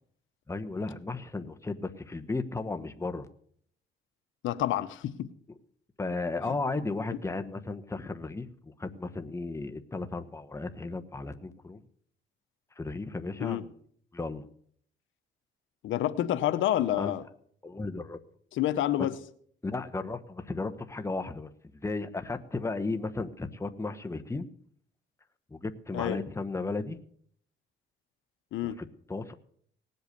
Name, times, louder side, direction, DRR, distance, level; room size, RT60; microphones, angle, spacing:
voice 1, 0.5-3.3 6.0-8.5 8.8-11.8 12.8-13.7 14.1-14.4 17.0-17.1 17.6-18.2 19.6-21.5 21.8-24.5 25.5-27.0 28.6-29.3, left 3 dB, 15° left, 8 dB, 1.1 m, -34 dB
voice 2, 4.4-5.3 6.4-6.6 13.4-13.6 15.8-17.2 18.5-19.2 25.9-26.2 28.5-28.8, left 12 dB, 80° left, 13 dB, 0.8 m, -28 dB
18.5 x 8.0 x 6.6 m, 0.62 s
cardioid pair, 90°, 20 cm